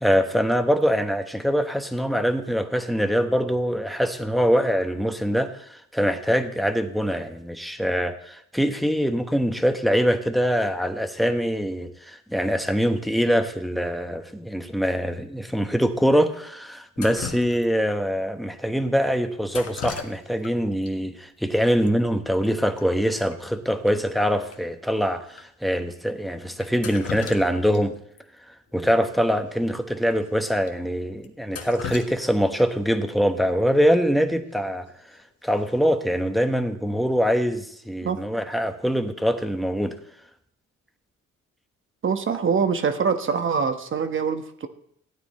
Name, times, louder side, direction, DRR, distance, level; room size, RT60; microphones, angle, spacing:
voice 1, 0.0-27.9 28.7-34.9 35.4-40.0, equal, ahead, 7 dB, 1.1 m, -23 dB
Drip, 17.0-18.0 19.5-20.5 20.8-20.9 21.9-22.0 22.2-22.5 22.8-22.9 23.3-23.4 23.9-24.0 24.5-24.6 25.3-25.4 26.6-27.8 28.2-28.3 29.6-29.7 30.1-30.2 30.7-30.8 31.2-32.9 34.9-35.2 35.6-36.0, left 6 dB, 55° left, 1.6 m, -37 dB
voice 2, 42.0-44.7, right 6 dB, 40° right, 7 dB, 1.2 m, -24 dB
15.5 x 9.6 x 4.2 m, 0.69 s
cardioid pair, 90°, 30 cm